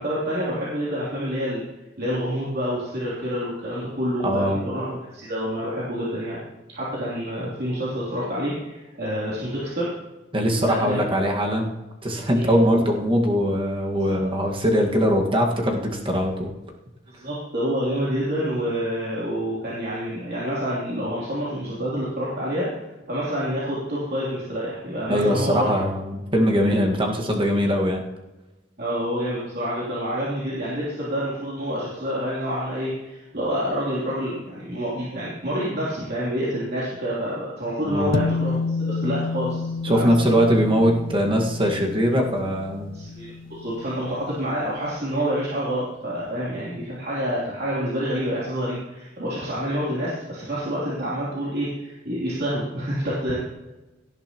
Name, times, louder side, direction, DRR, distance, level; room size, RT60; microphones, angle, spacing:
voice 1, 0.0-1.6 2.0-6.4 6.7-9.9 10.6-11.0 12.3-12.5 14.1-14.3 17.1-25.8 28.8-40.0 42.9-53.4, equal, 55° right, -8 dB, 3.2 m, -28 dB
voice 2, 4.2-4.6 10.3-11.7 12.0-16.5 25.1-28.0 37.8-38.1 39.8-42.9, equal, 25° right, 0 dB, 1.7 m, -21 dB
sound 1, 38.1-44.7, left 4 dB, 80° left, 0.6 m, -30 dB
17.5 x 11.0 x 3.0 m, 1.1 s
head